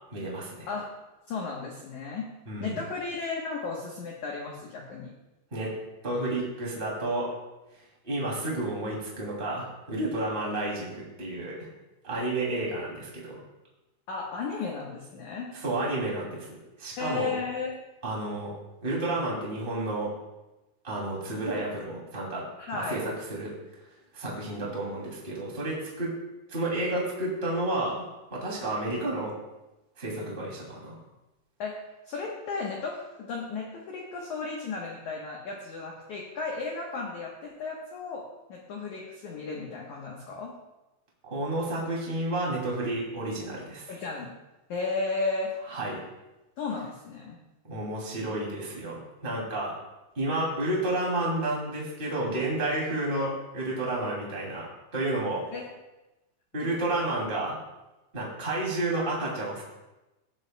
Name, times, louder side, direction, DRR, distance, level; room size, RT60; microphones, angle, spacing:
voice 1, 0.1-0.7 2.5-2.8 5.5-5.7 6.0-7.3 8.0-11.7 12.0-13.4 15.5-17.4 18.0-18.5 18.8-20.1 20.8-22.4 22.7-23.5 24.1-26.1 26.5-28.0 28.3-29.3 30.0-31.0 41.2-43.8 45.7-46.0 47.6-49.7 50.2-55.4 56.5-57.6 58.1-59.6, right 2 dB, 20° right, -3 dB, 1.8 m, -31 dB
voice 2, 1.3-2.3 2.6-5.1 14.1-15.5 17.0-17.7 22.6-23.0 31.6-31.8 32.1-40.5 43.9-44.3 44.7-45.5 46.6-47.4 55.5-55.6 56.6-57.0, left 4 dB, 90° left, -2 dB, 1.6 m, -34 dB
20.5 x 7.7 x 2.2 m, 1.0 s
omnidirectional pair, 5.3 m